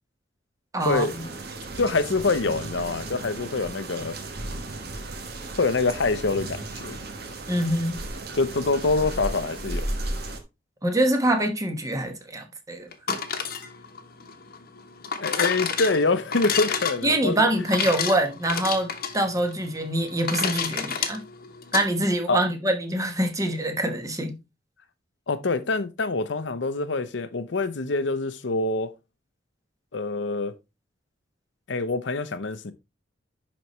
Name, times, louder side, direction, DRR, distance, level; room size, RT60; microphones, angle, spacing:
voice 1, 0.7-1.3 7.5-8.0 10.8-12.9 17.0-21.2 21.7-24.4, right 1 dB, 20° right, 1.2 m, -25 dB
sound 1, 0.8-10.4, right 2 dB, 55° right, 1.3 m, -35 dB
voice 2, 1.8-4.2 5.6-7.0 8.3-9.9 15.2-17.5 22.3-22.4 25.3-28.9 29.9-30.5 31.7-32.7, left 3 dB, 70° left, 0.7 m, -25 dB
sound 2, 12.9-21.9, left 6 dB, 55° left, 1.1 m, -30 dB
10.5 x 4.2 x 3.1 m
head